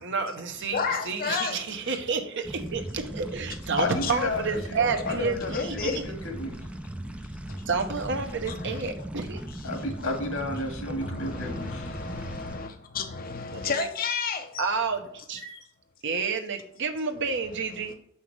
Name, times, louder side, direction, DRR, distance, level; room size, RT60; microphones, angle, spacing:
voice 1, 0.0-5.9 7.7-9.4 13.5-13.9 14.6-15.4 16.0-17.9, right 4 dB, 60° right, 1.0 m, -30 dB
voice 2, 0.7-2.0 4.0-4.1 4.9-6.1 8.5-9.0 9.3-9.7 11.0-14.7 17.8-17.9, left 5 dB, 45° left, 0.7 m, -32 dB
sound 1, 2.4-12.6, right 1 dB, 5° right, 0.4 m, -38 dB
voice 3, 3.8-6.5 9.6-12.1 15.4-15.6, left 2 dB, 80° left, 2.0 m, -32 dB
7.0 x 5.8 x 3.3 m
head